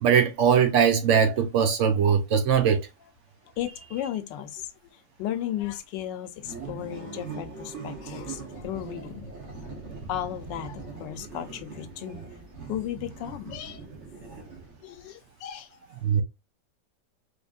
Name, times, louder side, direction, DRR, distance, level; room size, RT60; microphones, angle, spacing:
voice 1, 0.0-2.9 16.0-16.2, right 7 dB, 90° right, 0.6 m, -21 dB
voice 2, 3.6-9.3 9.6-9.8 10.1-12.2 12.7-13.8 14.8-15.7, left 11 dB, 80° left, 1.3 m, -35 dB
sound 1, 6.4-15.0, right 4 dB, 45° right, 1.3 m, -41 dB
4.3 x 3.2 x 2.3 m
omnidirectional pair, 1.9 m